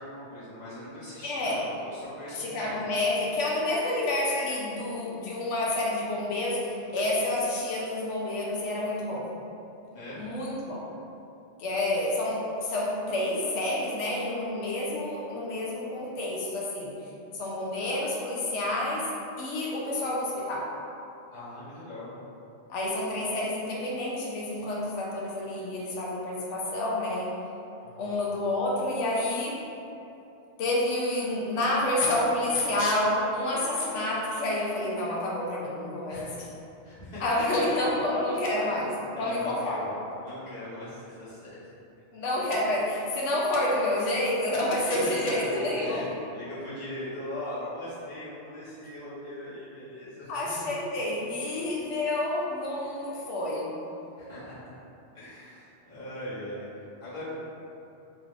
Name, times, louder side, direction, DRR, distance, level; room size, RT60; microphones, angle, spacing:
voice 1, 0.0-2.8 9.9-10.3 21.3-22.1 27.8-28.1 36.1-36.5 36.8-37.2 37.7-37.8 38.4-38.9 39.1-39.9 40.2-41.6 44.9-50.7 54.2-54.6 55.1-56.6 57.0-57.3, left 1 dB, 35° left, -12 dB, 1.4 m, -40 dB
voice 2, 1.2-1.6 2.3-9.3 10.2-10.8 11.6-16.9 17.3-19.1 19.4-20.7 22.7-27.3 28.0-29.6 30.6-36.5 37.2-39.9 42.1-46.1 50.3-53.7, left 1 dB, 80° left, -4 dB, 1.0 m, -29 dB
3.6 x 3.0 x 3.2 m, 2.8 s
omnidirectional pair, 1.2 m